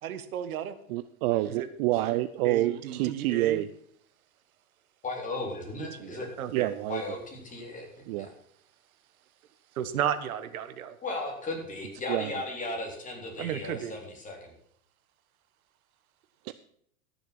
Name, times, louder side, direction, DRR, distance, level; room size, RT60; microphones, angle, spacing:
voice 1, 0.0-0.8 1.5-3.6 6.0-6.7 9.7-11.0 13.4-13.9, right 9 dB, 80° right, 12 dB, 1.3 m, -34 dB
voice 2, 0.9-3.7 6.5-7.0 8.1-8.3 12.1-12.3 16.4-16.5, right 16 dB, 45° right, 14 dB, 0.5 m, -28 dB
voice 3, 5.0-6.3 6.9-7.9 8.2-8.3 11.0-14.5, left 2 dB, 20° left, 0 dB, 3.9 m, -36 dB
13.5 x 7.0 x 5.9 m, 0.69 s
hypercardioid pair, 125°, 42 cm